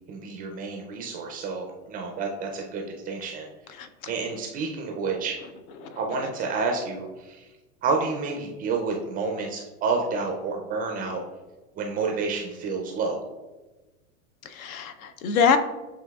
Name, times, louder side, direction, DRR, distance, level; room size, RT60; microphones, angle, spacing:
voice 1, 0.1-3.5 4.1-5.4 6.0-7.5 7.8-11.2 11.8-13.2, right 4 dB, 20° right, 1 dB, 0.3 m, -29 dB
voice 2, 3.8-4.1 5.8-6.0 14.4-15.6, left 6 dB, 75° left, 10 dB, 0.6 m, -25 dB
8.0 x 2.7 x 2.2 m, 1.2 s
hypercardioid pair, 110°, 42 cm